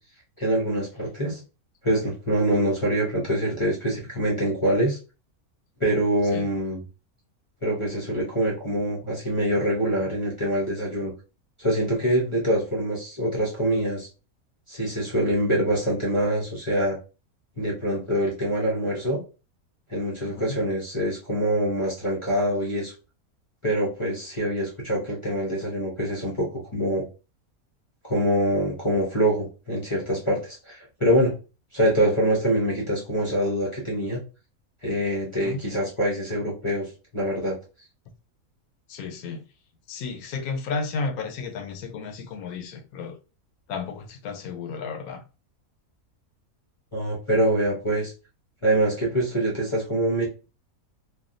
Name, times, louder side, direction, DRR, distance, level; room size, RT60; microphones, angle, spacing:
voice 1, 0.4-1.4 1.8-5.0 5.8-6.8 7.6-11.1 11.6-14.1 14.7-17.0 17.6-19.2 19.9-22.9 23.6-27.0 28.0-31.3 31.7-34.2 34.8-37.6 46.9-48.1 48.6-50.3, right 1 dB, 30° left, 0.6 m, -25 dB
voice 2, 20.2-20.6 35.4-35.6 38.9-39.4 39.9-43.2 43.7-45.2, left 4 dB, 80° left, 1.1 m, -33 dB
3.4 x 2.2 x 2.4 m
omnidirectional pair, 1.5 m